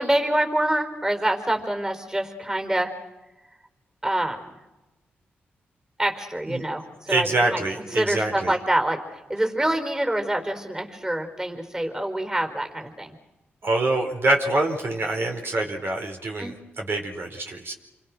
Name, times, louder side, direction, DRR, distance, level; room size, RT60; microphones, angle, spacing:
voice 1, 0.0-2.9 4.0-4.6 6.0-7.6 7.9-13.2 16.4-16.5, right 1 dB, 15° right, 5 dB, 4.7 m, -26 dB
voice 2, 7.1-8.5 13.6-17.7, right 2 dB, 60° right, 2 dB, 4.7 m, -25 dB
28.5 x 24.0 x 6.3 m, 1.1 s
cardioid pair, 65°, 4 cm